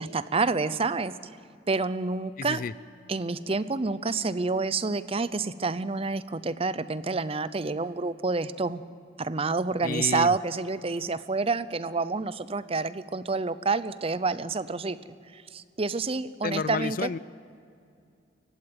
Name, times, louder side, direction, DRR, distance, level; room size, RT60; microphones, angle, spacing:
voice 1, 0.0-1.4 1.7-2.6 3.1-8.8 9.2-15.0 15.3-17.1, right 3 dB, 30° right, 15 dB, 0.6 m, -28 dB
voice 2, 2.4-2.7 9.8-10.3 16.4-17.2, left 5 dB, 45° left, 19 dB, 0.4 m, -30 dB
19.5 x 15.5 x 9.4 m, 2.4 s
head